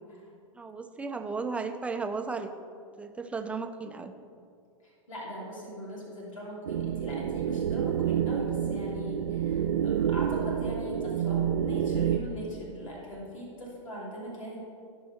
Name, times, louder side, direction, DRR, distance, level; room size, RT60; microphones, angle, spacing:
voice 1, 0.5-2.5 3.0-4.1, right 4 dB, 5° right, 6 dB, 0.7 m, -34 dB
voice 2, 4.8-14.6, equal, 75° left, -4 dB, 2.9 m, -40 dB
sound 1, 6.7-12.2, right 9 dB, 65° right, 0.4 m, -28 dB
16.5 x 5.6 x 4.5 m, 2.4 s
figure-of-eight pair, 95°, 17 cm